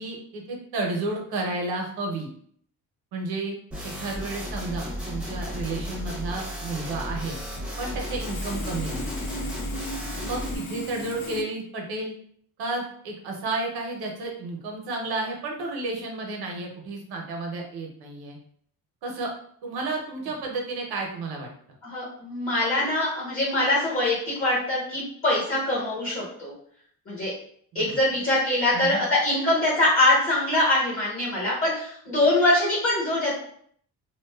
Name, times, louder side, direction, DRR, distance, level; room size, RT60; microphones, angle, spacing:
voice 1, 0.0-2.3 3.1-3.6 3.8-7.4 7.8-9.1 10.2-12.1 12.6-18.4 19.0-19.3 19.6-21.5 27.7-28.0 28.7-29.0, right 2 dB, 75° right, 1 dB, 0.7 m, -32 dB
sound 1, 3.7-10.6, equal, 5° right, 0.6 m, -34 dB
Sawing, 7.9-11.4, left 1 dB, 70° left, 0.6 m, -37 dB
voice 2, 21.8-26.5 27.1-27.3 27.7-33.3, left 1 dB, 35° left, -6 dB, 1.0 m, -23 dB
2.5 x 2.3 x 2.2 m, 0.62 s
cardioid pair, 145°, 38 cm